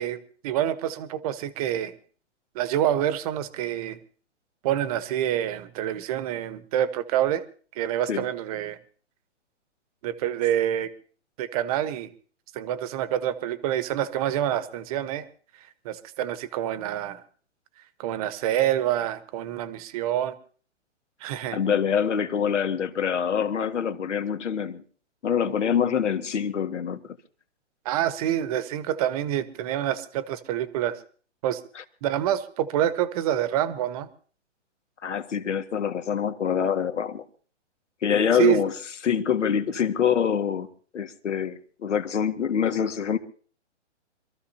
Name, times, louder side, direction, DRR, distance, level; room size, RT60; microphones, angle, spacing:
voice 1, 0.0-2.0 2.5-4.0 4.6-7.4 7.8-8.8 10.0-10.9 11.4-12.1 12.5-15.2 15.8-17.2 18.0-20.4 21.2-21.6 27.8-31.0 31.4-31.6 32.0-34.1 38.3-38.6, right 11 dB, 30° right, 1.0 m, -27 dB
voice 2, 21.5-24.8 25.2-27.0 31.7-31.8 35.0-37.2 38.0-38.7 39.0-40.7 40.9-43.2, left 7 dB, 80° left, 1.8 m, -25 dB
26.0 x 14.0 x 2.8 m
hypercardioid pair, 150°, 36 cm